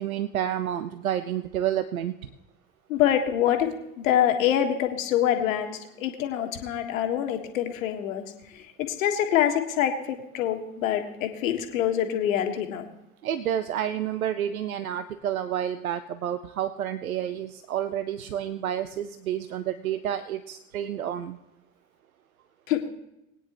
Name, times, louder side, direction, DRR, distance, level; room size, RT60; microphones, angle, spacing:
voice 1, 0.0-2.1 13.2-21.4, right 10 dB, 85° right, 13 dB, 0.6 m, -29 dB
voice 2, 2.9-3.7 4.0-8.2 8.9-12.9 22.7-22.8, left 10 dB, 70° left, 5 dB, 1.5 m, -25 dB
21.0 x 9.4 x 3.0 m, 0.90 s
hypercardioid pair, 75°, 41 cm